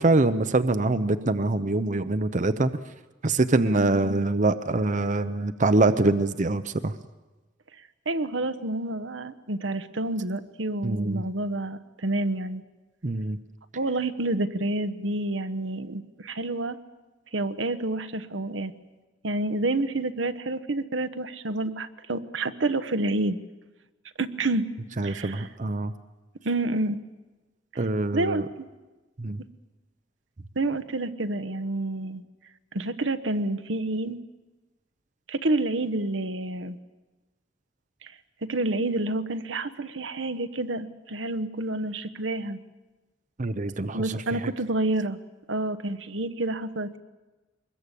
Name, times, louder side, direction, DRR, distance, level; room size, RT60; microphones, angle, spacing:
voice 1, 0.0-2.7 3.2-6.9 10.8-11.2 13.0-13.4 25.0-25.9 27.8-28.4 29.2-29.4 43.4-44.2, right 2 dB, 40° right, 11 dB, 0.7 m, -24 dB
voice 2, 3.6-4.2 8.0-12.6 13.7-16.8 17.3-18.7 19.2-23.4 24.2-24.6 25.0-25.5 26.4-27.0 27.7-27.8 28.1-28.7 30.5-32.2 32.7-34.2 35.3-36.8 38.0-38.1 38.5-42.6 43.9-45.2 45.5-47.0, right 2 dB, 80° right, 10 dB, 1.2 m, -29 dB
24.0 x 21.0 x 8.4 m, 1.2 s
head